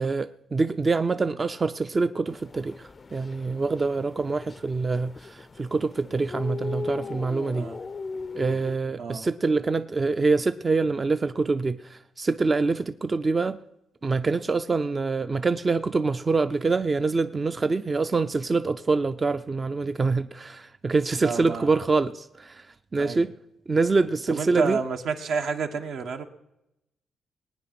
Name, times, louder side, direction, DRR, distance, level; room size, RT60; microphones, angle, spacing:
voice 1, 0.0-7.7 8.3-13.6 14.0-22.7 22.9-23.3 23.7-24.8, right 3 dB, 30° right, 0.5 m, -25 dB
sound 1, 2.3-8.8, left 4 dB, 30° left, 0.4 m, -38 dB
voice 2, 21.2-21.7 23.0-23.3 24.3-26.2, right 5 dB, 75° right, 1.4 m, -30 dB
20.0 x 9.4 x 6.0 m
cardioid pair, 100°, 0 cm